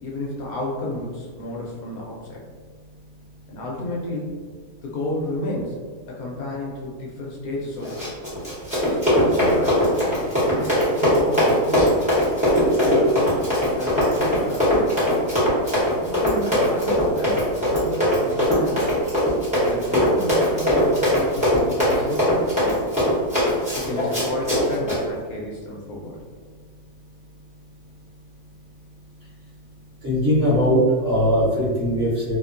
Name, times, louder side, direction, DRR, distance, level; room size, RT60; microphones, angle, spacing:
voice 1, 0.0-2.4 3.5-4.3 4.8-5.8 6.1-8.1 8.8-9.9 10.5-12.0 12.5-13.3 13.7-15.1 15.9-18.9 19.6-23.0 23.8-26.2, left 1 dB, 70° left, -3 dB, 1.0 m, -32 dB
Run, 7.8-25.0, equal, 5° right, 0.9 m, -20 dB
voice 2, 30.0-32.4, equal, 50° right, -9 dB, 1.1 m, -20 dB
2.7 x 2.1 x 2.4 m, 1.5 s
omnidirectional pair, 1.6 m